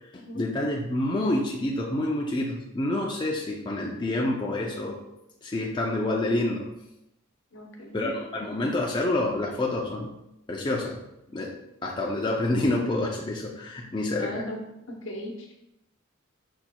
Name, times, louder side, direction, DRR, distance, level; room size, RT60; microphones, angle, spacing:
voice 1, 0.1-5.0 5.4-6.7 7.9-10.1 10.5-11.0 11.3-11.6 11.8-14.4, left 1 dB, 25° left, -1 dB, 0.4 m, -28 dB
voice 2, 7.5-8.1 14.2-14.6 14.9-15.7, left 1 dB, 65° left, 1 dB, 0.9 m, -37 dB
5.4 x 4.4 x 2.2 m, 0.86 s
head